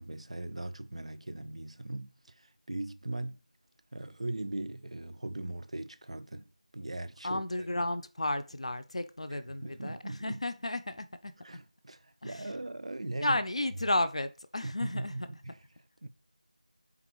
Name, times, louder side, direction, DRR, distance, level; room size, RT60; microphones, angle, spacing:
voice 1, 0.0-3.4 3.9-7.4 9.3-10.4 11.4-13.4 14.6-15.6 16.0-16.1, right 2 dB, 50° right, 0.4 m, -39 dB
voice 2, 7.2-11.3 12.2-12.5 13.2-15.3, left 1 dB, 50° left, 0.4 m, -33 dB
4.0 x 3.5 x 2.9 m
figure-of-eight pair, 175°, 4 cm